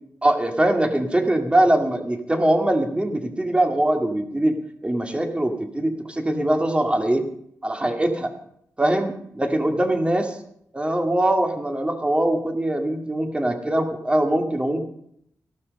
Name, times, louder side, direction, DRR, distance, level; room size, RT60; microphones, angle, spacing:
voice 1, 0.2-4.6 4.8-7.3 7.6-8.3 8.8-10.3 10.7-14.8, right 1 dB, 15° right, 4 dB, 2.3 m, -22 dB
16.0 x 12.0 x 5.4 m, 0.70 s
wide cardioid pair, 115°, 6 cm